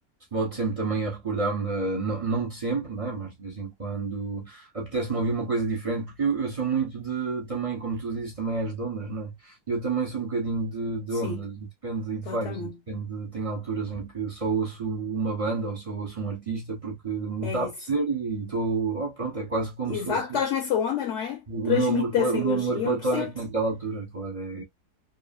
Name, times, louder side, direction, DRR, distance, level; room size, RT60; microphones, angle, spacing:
voice 1, 0.3-20.4 21.5-24.6, right 4 dB, 60° right, 0.3 m, -29 dB
voice 2, 11.1-11.4 12.3-12.8 17.4-17.7 19.9-23.3, left 8 dB, 60° left, 0.8 m, -28 dB
3.0 x 2.4 x 2.3 m
omnidirectional pair, 1.7 m